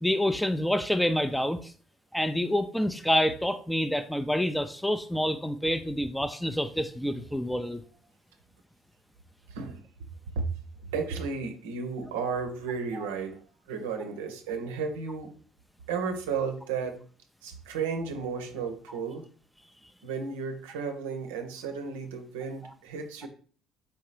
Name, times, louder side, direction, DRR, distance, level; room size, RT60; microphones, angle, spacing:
voice 1, 0.0-1.7 2.1-7.8 12.9-13.1, left 1 dB, 5° left, 0.3 m, -27 dB
voice 2, 9.5-9.8 10.4-10.5 10.8-13.4 13.7-15.3 15.9-17.0 17.4-19.3 20.0-23.3, right 5 dB, 85° right, 0.5 m, -33 dB
4.4 x 2.7 x 3.2 m
hypercardioid pair, 60°, 0 cm